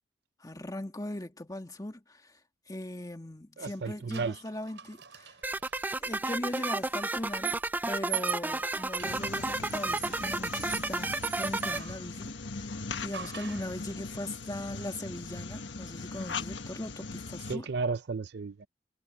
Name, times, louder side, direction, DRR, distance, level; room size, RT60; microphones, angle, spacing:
voice 1, 0.4-2.4 2.7-5.3 6.0-7.6 7.9-17.7, left 1 dB, 20° left, 1.8 m, -39 dB
voice 2, 3.6-4.4 17.5-18.7, right 4 dB, 60° right, 0.5 m, -33 dB
sound 1, 4.1-6.0 6.9-12.1 13.1-13.8, right 13 dB, 80° right, 5.2 m, -41 dB
sound 2, 5.4-11.8, right 2 dB, 10° right, 0.3 m, -32 dB
sound 3, 9.0-17.6, left 4 dB, 80° left, 1.4 m, -40 dB
head